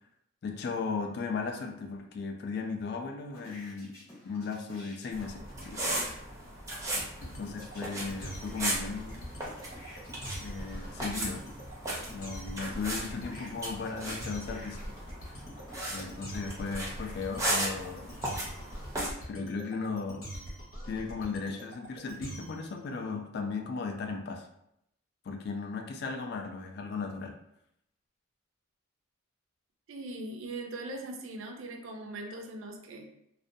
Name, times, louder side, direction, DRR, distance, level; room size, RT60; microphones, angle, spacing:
voice 1, 0.4-3.9 4.2-6.0 6.9-9.3 10.4-11.4 12.1-14.8 15.9-18.1 19.3-20.3 20.9-24.5 25.2-27.3, left 4 dB, 50° left, 3 dB, 0.3 m, -36 dB
sound 1, 3.3-6.2 7.6-11.2 11.8-17.1 17.7-18.6, left 1 dB, 15° left, 0.9 m, -52 dB
sound 2, 5.1-19.1, right 1 dB, 15° right, 0.5 m, -37 dB
sound 3, 7.1-22.7, equal, 80° left, 1.0 m, -43 dB
voice 2, 29.9-33.1, right 2 dB, 70° right, 3 dB, 0.4 m, -40 dB
2.4 x 2.1 x 2.6 m, 0.77 s
head